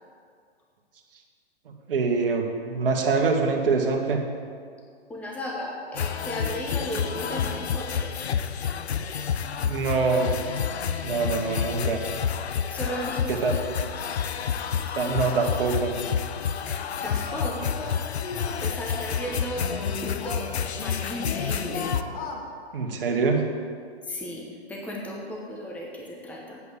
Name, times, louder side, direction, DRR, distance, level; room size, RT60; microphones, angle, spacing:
voice 1, 1.9-4.2 9.6-10.4 11.0-12.0 13.3-13.5 14.9-15.9 22.7-23.5, right 4 dB, 60° right, 2 dB, 1.8 m, -24 dB
voice 2, 5.1-8.1 12.7-14.0 16.6-17.8 18.4-21.9 24.0-24.4 24.7-26.6, equal, 5° left, -2 dB, 1.0 m, -35 dB
sound 1, 6.0-22.0, left 7 dB, 75° left, 0.7 m, -29 dB
Singing, 14.6-14.9 15.2-15.6 15.9-16.2 16.9-18.5 19.2-20.9 21.2-22.4, left 4 dB, 35° left, 1.5 m, -39 dB
8.5 x 8.0 x 7.3 m, 2.2 s
hypercardioid pair, 140°, 32 cm